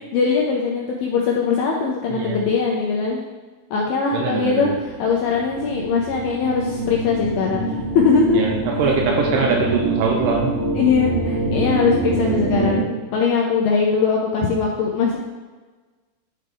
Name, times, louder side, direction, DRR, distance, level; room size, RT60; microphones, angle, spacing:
voice 1, 0.1-3.2 3.7-8.4 10.7-15.2, left 5 dB, 80° left, -2 dB, 2.2 m, -21 dB
voice 2, 2.1-2.4 4.1-4.8 8.3-10.5, right 5 dB, 80° right, 1 dB, 2.5 m, -22 dB
sound 1, 4.6-12.8, right 2 dB, 35° right, 1.0 m, -25 dB
12.0 x 4.4 x 3.5 m, 1.3 s
omnidirectional pair, 5.2 m